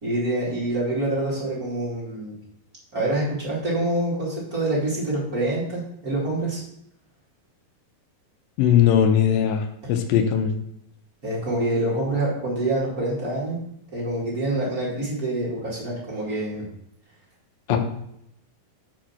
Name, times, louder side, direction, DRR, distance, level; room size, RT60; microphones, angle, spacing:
voice 1, 0.0-2.4 2.9-6.6 9.8-9.9 11.2-13.6 13.9-16.6 17.7-17.8, right 1 dB, 30° right, -6 dB, 2.4 m, -26 dB
voice 2, 8.6-10.5 17.7-17.8, left 9 dB, 85° left, 6 dB, 2.5 m, -19 dB
7.6 x 4.9 x 5.9 m, 0.75 s
omnidirectional pair, 4.1 m